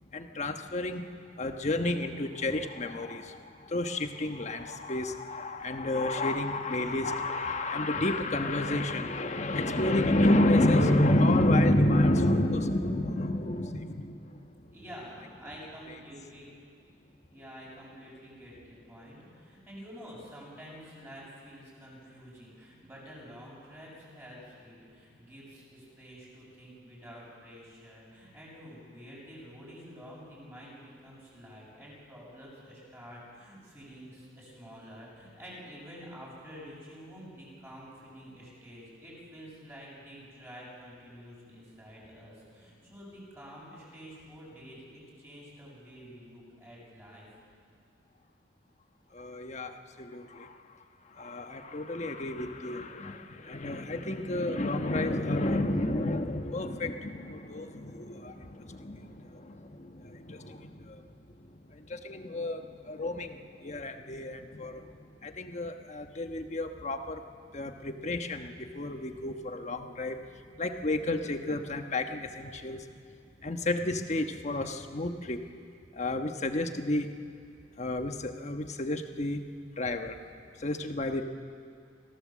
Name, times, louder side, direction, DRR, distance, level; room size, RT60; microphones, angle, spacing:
voice 1, 0.1-1.1 1.4-14.7 49.1-50.6 51.1-61.1 61.4-67.2 67.5-72.9 73.4-75.4 75.9-77.1 77.8-79.4 79.8-80.2 80.6-81.2, left 1 dB, 40° left, 6 dB, 1.2 m, -30 dB
voice 2, 14.7-16.5 17.3-47.3, equal, 15° right, -5 dB, 7.5 m, -48 dB
25.0 x 16.5 x 7.5 m, 2.3 s
head